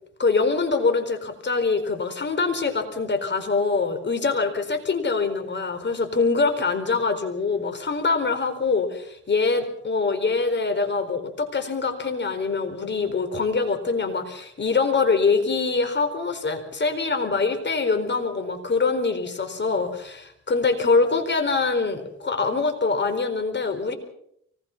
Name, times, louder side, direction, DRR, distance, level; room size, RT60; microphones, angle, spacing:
voice 1, 0.2-23.9, left 4 dB, 35° left, 8 dB, 4.5 m, -24 dB
24.0 x 21.0 x 6.0 m, 0.71 s
cardioid pair, 90°, 30 cm